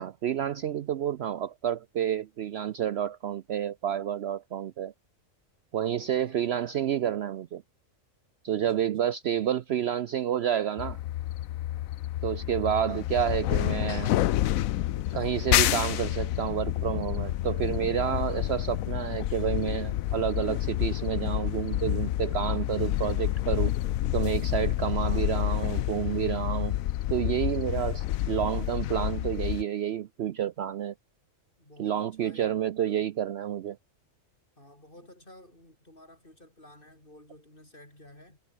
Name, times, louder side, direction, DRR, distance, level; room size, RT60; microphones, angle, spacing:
voice 1, 0.0-4.9 5.7-7.6 8.4-11.0 12.2-14.1 15.1-23.7 24.1-26.7 27.1-30.9 31.8-33.8, right 10 dB, 60° right, 0.8 m, -29 dB
voice 2, 5.9-6.4 6.9-7.1 8.5-8.8 31.6-33.0 34.6-38.4, left 1 dB, 40° left, 7.9 m, -53 dB
sound 1, 10.8-29.6, left 14 dB, 85° left, 1.0 m, -29 dB
omnidirectional pair, 1.4 m